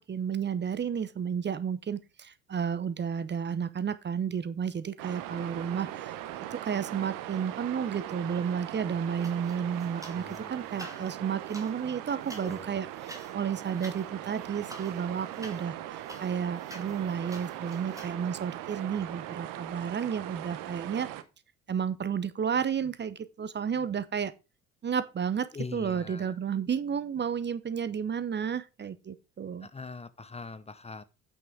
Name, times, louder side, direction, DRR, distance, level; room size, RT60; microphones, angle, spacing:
voice 1, 0.0-6.2 6.5-21.1 21.7-24.3 24.8-29.7, right 7 dB, 30° right, 0.9 m, -32 dB
sound 1, 5.0-21.2, right 13 dB, 55° right, 1.1 m, -40 dB
sound 2, 9.2-10.4 10.7-18.1, right 1 dB, 10° right, 2.6 m, -49 dB
voice 2, 10.2-10.7 12.4-12.8 25.5-26.4 29.6-31.0, left 4 dB, 15° left, 0.7 m, -42 dB
9.0 x 6.4 x 5.0 m
figure-of-eight pair, 55°, 38 cm